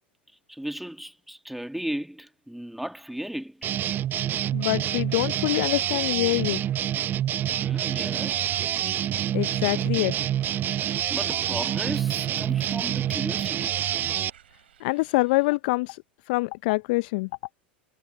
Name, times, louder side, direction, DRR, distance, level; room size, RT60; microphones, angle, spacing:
voice 1, 0.5-3.7 7.5-8.4 10.8-13.7, equal, ahead, 2.0 m, -36 dB
sound 1, 3.6-14.3, right 11 dB, 35° right, 0.6 m, -27 dB
voice 2, 4.5-6.6 9.3-10.1 14.8-16.0 16.3-17.3, left 24 dB, 55° left, 0.5 m, -25 dB
sound 2, 7.8-15.6, right 10 dB, 75° right, 6.6 m, -58 dB
figure-of-eight pair, 85°, 6 cm